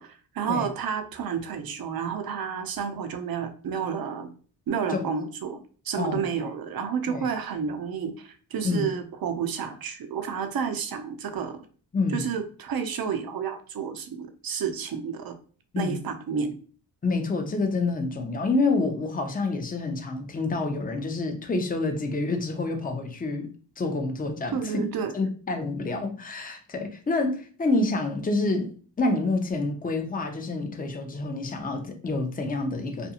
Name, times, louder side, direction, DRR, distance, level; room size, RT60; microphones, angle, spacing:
voice 1, 0.0-4.3 4.7-5.6 5.8-11.6 12.1-15.4 15.8-16.6 24.5-25.1, right 7 dB, 50° right, 6 dB, 0.6 m, -30 dB
voice 2, 6.0-6.5 7.1-7.3 8.6-8.9 11.9-12.3 15.7-16.0 17.0-23.5 23.8-24.9 25.1-33.1, left 3 dB, 20° left, 4 dB, 0.6 m, -28 dB
2.5 x 2.3 x 2.8 m, 0.41 s
cardioid pair, 55°, 46 cm